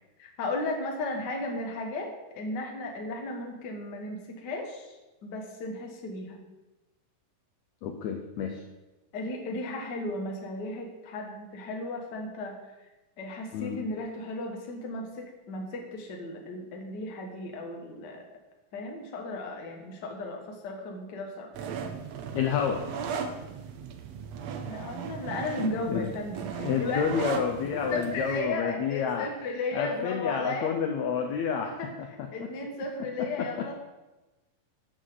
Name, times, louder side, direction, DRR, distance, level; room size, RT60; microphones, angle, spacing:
voice 1, 0.2-2.1 2.3-6.4 9.1-12.6 13.2-18.2 18.7-21.5 22.3-22.5 24.6-27.4 27.7-30.7 31.6-33.7, left 2 dB, 50° left, 2 dB, 1.4 m, -35 dB
voice 2, 7.8-8.6 13.5-13.9 22.3-22.8 25.8-26.1 26.6-29.3 29.7-31.8 32.2-32.3 33.2-33.5, left 7 dB, 80° left, 4 dB, 1.7 m, -29 dB
sound 1, 21.5-28.4, right 6 dB, 75° right, 1.5 m, -37 dB
12.5 x 8.0 x 3.9 m, 1.1 s
omnidirectional pair, 4.0 m